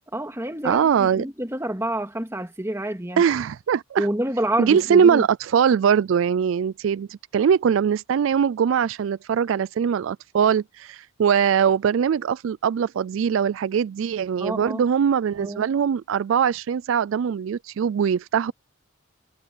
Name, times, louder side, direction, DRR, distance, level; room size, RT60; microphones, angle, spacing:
voice 1, 0.1-3.2 4.0-5.3 14.4-14.8 15.4-15.7, right 1 dB, 15° right, 2.2 m, -28 dB
voice 2, 0.6-1.2 3.2-4.1 4.6-18.5, right 7 dB, 75° right, 0.3 m, -21 dB
head